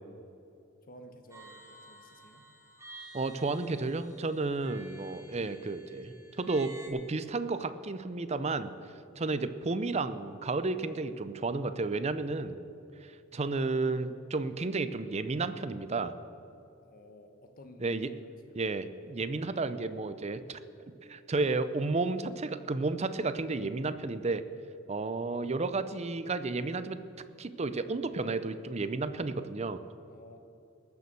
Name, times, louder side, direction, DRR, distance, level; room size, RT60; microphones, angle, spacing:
voice 1, 0.8-2.5 9.1-9.3 16.8-18.0 18.4-18.6 30.1-30.4, equal, 45° left, 6 dB, 1.1 m, -53 dB
sound 1, 1.3-6.9, right 1 dB, 15° right, 2.3 m, -51 dB
voice 2, 3.1-8.7 9.2-12.6 13.0-16.1 17.8-18.1 18.6-20.6 21.0-24.4 24.9-27.0 27.4-29.8, right 3 dB, 30° right, 12 dB, 0.6 m, -32 dB
20.0 x 6.9 x 6.8 m, 2.7 s
head